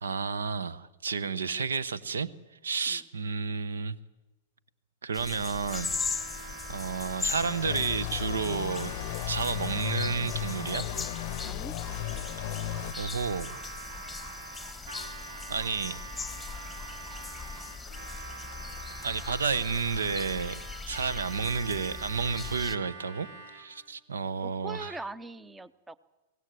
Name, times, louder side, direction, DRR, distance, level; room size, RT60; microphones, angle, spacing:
voice 1, 0.0-2.3 2.6-4.0 5.0-6.0 6.7-8.9 9.3-10.9 13.0-13.5 15.5-16.0 19.0-20.6 20.9-23.3 23.5-24.9, right 5 dB, 75° right, 16 dB, 0.8 m, -31 dB
sound 1, 5.1-22.8, left 4 dB, 10° left, 1.4 m, -39 dB
Harmonica, 5.6-23.9, right 4 dB, 60° right, 3.7 m, -45 dB
sound 2, 7.4-12.9, left 14 dB, 50° left, 0.7 m, -35 dB
voice 2, 11.5-11.8 24.4-26.0, right 3 dB, 10° right, 19 dB, 0.8 m, -41 dB
23.0 x 18.0 x 7.7 m, 1.1 s
figure-of-eight pair, 100°, 0 cm